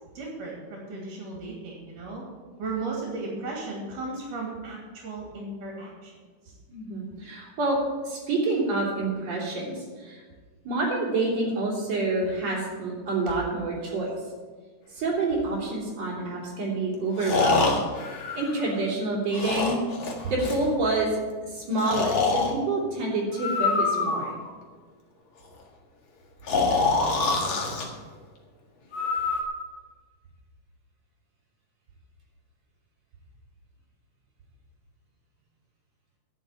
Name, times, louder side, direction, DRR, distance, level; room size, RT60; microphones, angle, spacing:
voice 1, 0.2-2.2 2.6-6.1, right 3 dB, 70° right, -2 dB, 4.0 m, -35 dB
voice 2, 6.7-10.2 10.6-14.1 14.9-17.8 18.3-19.8 20.2-21.1 21.4-24.3, right 2 dB, 50° right, -3 dB, 4.5 m, -27 dB
Breathing, 15.3-15.4 17.2-18.9 19.3-20.6 21.8-22.5 23.3-24.5 26.5-27.9 28.9-29.4, left 4 dB, 45° left, 2.1 m, -25 dB
11.0 x 7.2 x 9.0 m, 1.5 s
omnidirectional pair, 3.8 m